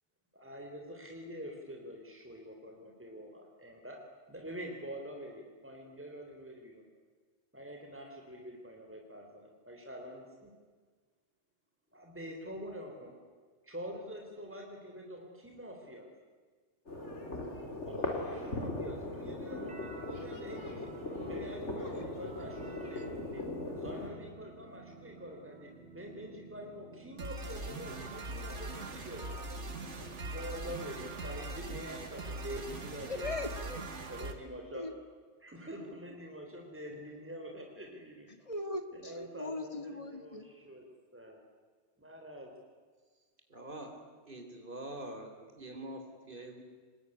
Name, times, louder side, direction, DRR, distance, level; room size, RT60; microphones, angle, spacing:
voice 1, 0.3-4.0 4.3-6.8 7.5-10.5 11.9-13.1 13.6-16.1 17.8-20.9 21.3-23.4 23.8-25.7 26.0-29.3 30.3-33.4 34.1-34.8 35.4-38.3 38.9-40.9 41.1-41.4 42.0-42.5, equal, 10° right, 1 dB, 3.5 m, -46 dB
sound 1, 16.9-24.1, left 2 dB, 80° left, 4.1 m, -39 dB
sound 2, 19.5-34.3, right 2 dB, 90° right, 2.3 m, -44 dB
voice 2, 33.1-33.9 34.7-34.9 38.3-40.5, left 2 dB, 30° left, 8 dB, 2.0 m, -40 dB
voice 3, 43.5-44.0 44.3-46.6, right 1 dB, 50° right, 4 dB, 4.0 m, -45 dB
25.5 x 21.0 x 9.9 m, 1.5 s
omnidirectional pair, 1.2 m